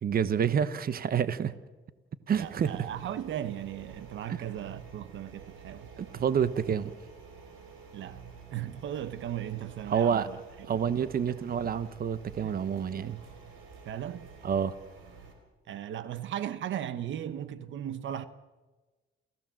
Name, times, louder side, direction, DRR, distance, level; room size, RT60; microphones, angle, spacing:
voice 1, 0.0-1.6 2.3-2.9 4.3-4.4 6.0-6.9 9.9-10.3 10.7-13.2 14.4-14.7, right 8 dB, 50° right, 1.1 m, -28 dB
voice 2, 2.3-5.9 7.9-8.2 8.5-10.4 12.4-12.6 13.8-14.3 15.7-18.3, right 10 dB, 70° right, 1.1 m, -37 dB
sound 1, 2.3-15.3, right 5 dB, 90° right, 4.5 m, -50 dB
29.0 x 15.5 x 7.6 m
cardioid pair, 90°, 20 cm